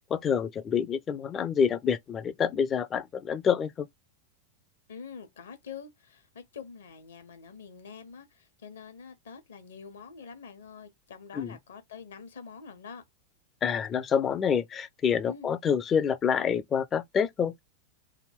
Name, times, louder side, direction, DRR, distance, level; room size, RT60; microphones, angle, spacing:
voice 1, 0.1-3.9 11.3-11.6 13.6-17.5, left 7 dB, 25° left, 0.5 m, -27 dB
voice 2, 4.9-13.0 15.2-15.5, left 6 dB, 65° left, 1.0 m, -46 dB
3.4 x 2.2 x 3.4 m
figure-of-eight pair, 90°, 0 cm